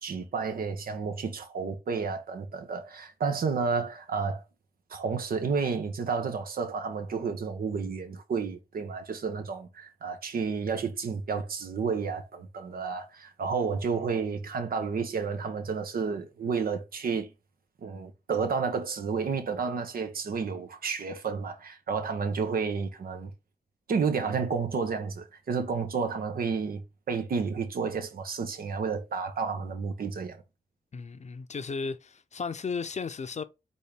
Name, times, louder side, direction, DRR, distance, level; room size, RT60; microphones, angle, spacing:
voice 1, 0.0-4.4 4.9-17.3 17.8-23.3 23.9-26.8 27.1-30.4, right 5 dB, 70° right, 0.9 m, -31 dB
voice 2, 30.9-33.4, left 5 dB, 50° left, 0.6 m, -35 dB
4.2 x 3.6 x 3.4 m
supercardioid pair, 45°, 15 cm